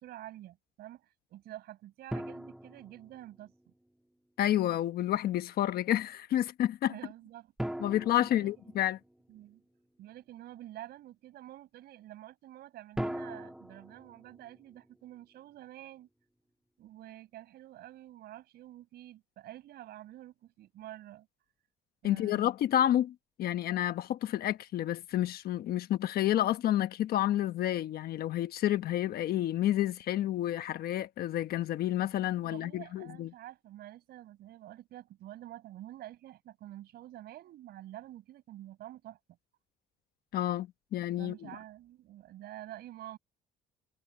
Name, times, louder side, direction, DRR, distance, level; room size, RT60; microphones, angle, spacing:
voice 1, 0.0-3.5 6.9-7.5 8.1-8.8 9.3-9.6 10.0-16.1 16.8-21.3 22.0-22.5 32.4-39.2 41.2-43.2, right 14 dB, 70° right, 5.6 m, -48 dB
sound 1, 2.1-3.7 7.6-9.5 13.0-15.2, right 1 dB, 5° right, 2.8 m, -41 dB
voice 2, 4.4-6.9 7.8-9.0 22.0-33.3 40.3-41.5, left 12 dB, 65° left, 1.2 m, -30 dB
cardioid pair, 110°, 17 cm